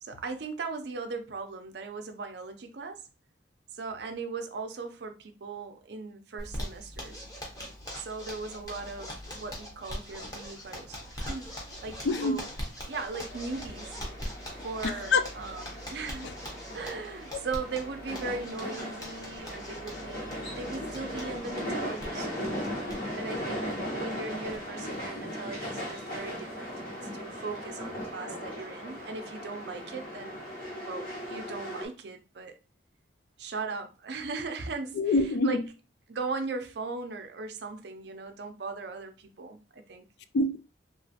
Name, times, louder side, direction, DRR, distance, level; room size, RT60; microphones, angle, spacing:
voice 1, 0.0-3.0 3.7-7.2 7.9-12.5 12.8-14.0 14.6-16.3 16.7-22.7 23.1-23.7 23.9-30.3 30.8-32.6 33.4-35.0 35.4-35.6 36.1-40.1, right 4 dB, 60° right, 0.5 m, -38 dB
Zipper (clothing), 6.4-24.6 24.9-25.0 25.3-25.4 25.7-26.2, equal, 20° left, 0.7 m, -42 dB
sound 1, 8.6-21.4, equal, 85° left, 0.8 m, -53 dB
voice 2, 12.0-12.4 14.8-15.3 16.2-16.3 17.3-17.4 34.9-35.6 40.3-40.6, left 3 dB, 65° left, 0.3 m, -26 dB
sound 2, 13.3-31.9, equal, 50° left, 1.1 m, -38 dB
2.9 x 2.4 x 2.7 m
head